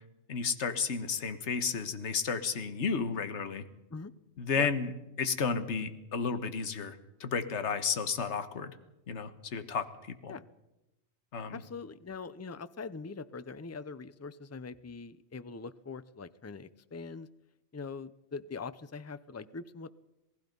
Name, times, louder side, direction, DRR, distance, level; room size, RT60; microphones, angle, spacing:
voice 1, 0.3-3.6 4.4-4.9 5.2-8.7 9.1-9.9 10.2-10.3 11.3-11.6, left 5 dB, 55° left, 10 dB, 1.6 m, -32 dB
voice 2, 11.5-17.3 17.7-19.9, left 4 dB, 25° left, 15 dB, 0.3 m, -42 dB
27.5 x 18.5 x 5.4 m, 0.95 s
omnidirectional pair, 1.5 m